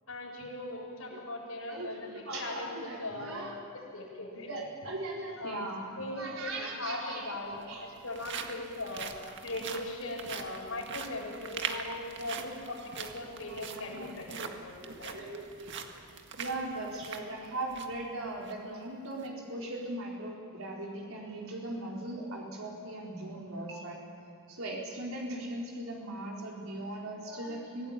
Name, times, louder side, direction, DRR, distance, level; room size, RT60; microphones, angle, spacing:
voice 1, 0.1-3.4 3.9-4.5 5.4-5.7 6.0-9.1 9.4-15.1, left 2 dB, 80° left, -2 dB, 7.6 m, -39 dB
voice 2, 1.7-3.6 4.3-7.8 13.4-14.5 14.8-15.9 16.4-24.0 24.5-27.9, right 2 dB, 75° right, -2 dB, 4.3 m, -39 dB
sound 1, 6.4-6.5 7.5-18.0 18.4-18.5 19.0-19.3, right 6 dB, 60° right, 1.8 m, -42 dB
25.0 x 17.5 x 9.0 m, 2.7 s
head